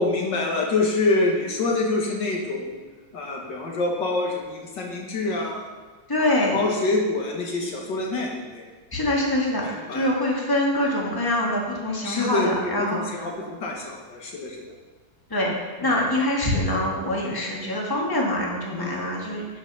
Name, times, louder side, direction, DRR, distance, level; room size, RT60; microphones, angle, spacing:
voice 1, 0.0-2.8 3.1-5.7 6.2-8.6 9.6-10.1 12.0-14.6 15.8-15.9 18.7-19.1, left 2 dB, 80° left, 0 dB, 2.2 m, -26 dB
voice 2, 6.1-6.6 8.9-13.2 15.3-19.6, left 1 dB, 10° left, -3 dB, 1.9 m, -25 dB
12.0 x 6.1 x 5.6 m, 1.3 s
omnidirectional pair, 1.9 m